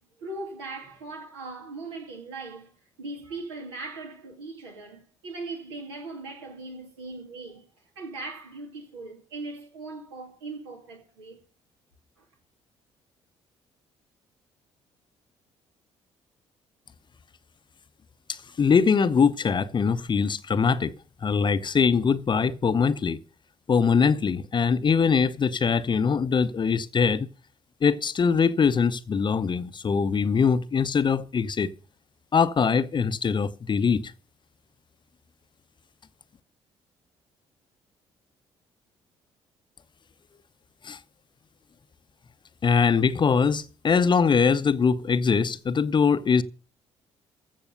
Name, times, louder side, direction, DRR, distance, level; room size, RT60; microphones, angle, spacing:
voice 1, 0.2-2.7 3.0-7.6 7.9-11.4 12.2-12.3, right 3 dB, 75° right, 2.9 m, -39 dB
voice 2, 18.3-20.9 21.2-23.2 23.7-27.3 27.8-31.7 32.3-34.1 40.8-41.0 42.6-46.4, left 6 dB, 35° left, 0.8 m, -22 dB
15.0 x 6.5 x 6.7 m
figure-of-eight pair, 45°, 14 cm